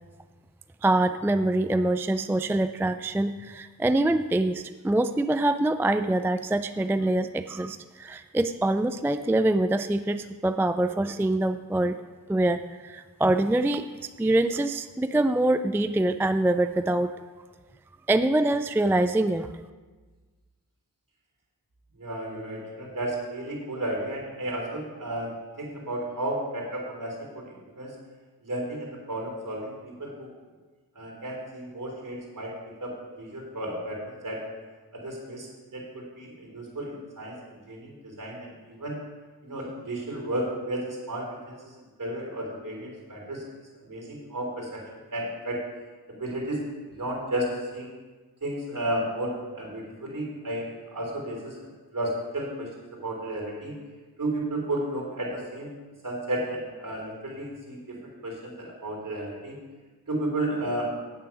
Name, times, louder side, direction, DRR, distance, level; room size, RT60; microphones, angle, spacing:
voice 1, 0.8-12.0 12.3-13.9 14.2-17.1 18.1-19.5, right 1 dB, 5° right, 10 dB, 0.3 m, -24 dB
voice 2, 22.0-25.3 25.6-28.0 28.4-30.3 31.0-32.5 32.8-34.4 34.9-37.4 37.7-39.0 39.4-43.4 43.8-44.8 45.1-45.6 46.1-46.6 46.9-47.9 48.4-51.6 51.9-53.7 54.2-55.7 56.0-59.6 60.1-60.9, right 1 dB, 55° right, -1 dB, 3.6 m, -33 dB
9.1 x 7.4 x 5.8 m, 1.4 s
cardioid pair, 45°, 38 cm